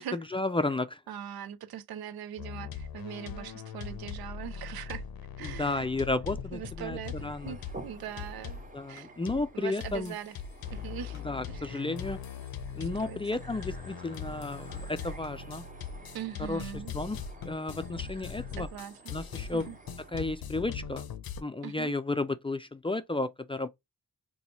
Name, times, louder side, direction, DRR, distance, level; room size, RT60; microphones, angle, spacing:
voice 1, 0.3-1.0 5.4-7.5 8.7-10.1 11.3-12.2 12.8-15.6 16.5-16.6 16.9-18.7 19.1-19.7 20.1-21.1 21.4-23.7, left 2 dB, 15° left, 0.3 m, -33 dB
voice 2, 1.1-5.0 5.4-5.9 6.5-8.6 8.9-9.1 9.5-10.4 10.7-11.9 12.8-13.4 16.1-16.9 18.6-19.1 19.5-19.8 21.6-22.0, right 10 dB, 90° right, 0.5 m, -41 dB
sound 1, 2.4-9.0 9.3-9.5 9.8-21.4, left 6 dB, 80° left, 0.6 m, -41 dB
sound 2, 6.5-20.5, right 2 dB, 20° right, 0.8 m, -52 dB
2.9 x 2.3 x 4.0 m
cardioid pair, 55°, 35 cm